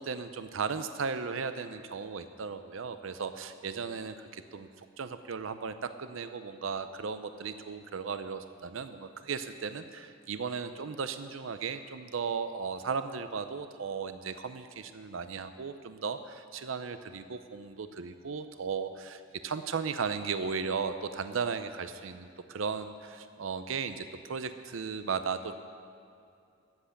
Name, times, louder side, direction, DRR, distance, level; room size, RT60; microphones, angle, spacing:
voice 1, 0.0-4.7 5.0-25.6, right 5 dB, 80° right, 10 dB, 0.6 m, -36 dB
13.5 x 8.1 x 8.4 m, 2.5 s
head